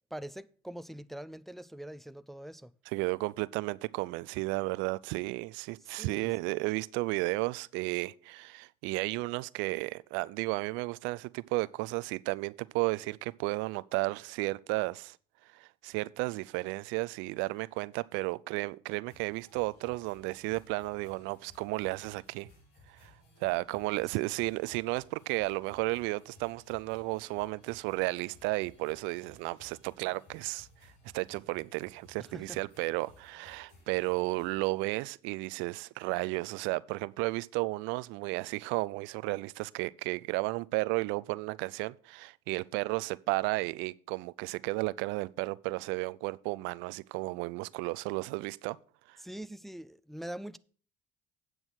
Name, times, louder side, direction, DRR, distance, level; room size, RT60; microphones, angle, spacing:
voice 1, 0.1-2.7 5.9-6.3 32.2-32.6 49.2-50.6, right 1 dB, ahead, 0.4 m, -43 dB
voice 2, 2.9-15.2 15.5-22.5 22.9-23.1 23.4-48.8 49.1-49.2, right 23 dB, 70° right, 0.4 m, -33 dB
sound 1, 19.1-34.7, left 2 dB, 75° left, 3.2 m, -60 dB
9.0 x 6.2 x 6.3 m
supercardioid pair, 75°, 20 cm